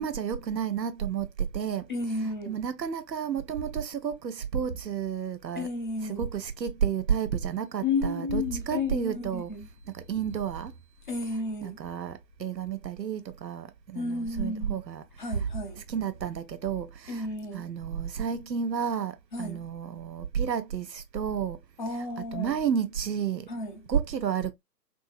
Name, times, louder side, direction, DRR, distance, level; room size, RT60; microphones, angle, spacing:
voice 1, 0.0-1.9 2.2-5.7 6.0-9.5 9.9-10.7 11.6-15.0 15.3-15.5 15.9-17.3 17.5-21.6 22.3-23.5 23.9-24.5, right 7 dB, 90° right, 0.7 m, -31 dB
voice 2, 1.9-2.6 5.5-6.3 7.8-9.7 11.1-11.8 13.9-14.8 15.2-15.8 17.1-17.7 19.3-19.7 21.8-22.5 23.5-23.9, left 3 dB, 30° left, 0.6 m, -32 dB
2.7 x 2.7 x 2.3 m
figure-of-eight pair, 140°, 49 cm